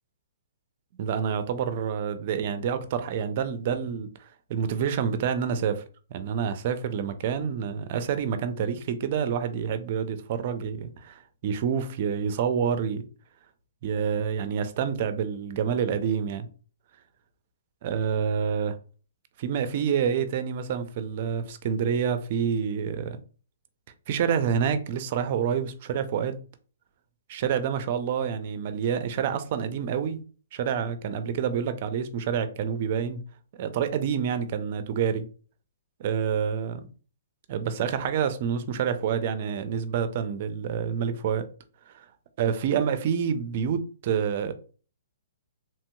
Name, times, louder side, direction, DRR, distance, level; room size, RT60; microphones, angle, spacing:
voice 1, 1.0-5.8 6.1-13.0 13.8-16.5 17.8-18.8 19.4-23.2 24.1-26.4 27.3-30.2 30.5-33.2 33.6-35.3 36.0-36.9 37.5-41.5 41.9-42.0 42.4-44.5, right 7 dB, 45° right, 0.4 m, -28 dB
2.9 x 2.8 x 2.2 m
hypercardioid pair, 145°, 0 cm